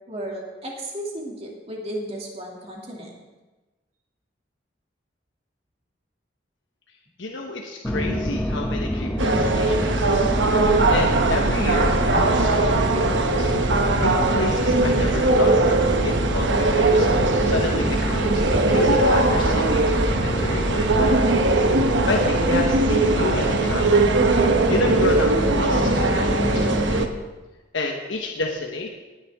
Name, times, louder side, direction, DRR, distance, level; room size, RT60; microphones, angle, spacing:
voice 1, 0.1-3.2, right 1 dB, 35° right, -1 dB, 2.5 m, -34 dB
voice 2, 7.2-10.3 10.9-13.5 14.0-17.1 17.4-21.3 22.1-24.1 24.7-27.0 27.7-28.9, left 2 dB, 85° left, 1 dB, 1.2 m, -30 dB
sound 1, 7.8-27.0, left 1 dB, 10° left, 0.8 m, -28 dB
sound 2, 9.2-27.1, right 2 dB, 75° right, 1.0 m, -20 dB
18.0 x 10.0 x 3.6 m, 1.2 s
head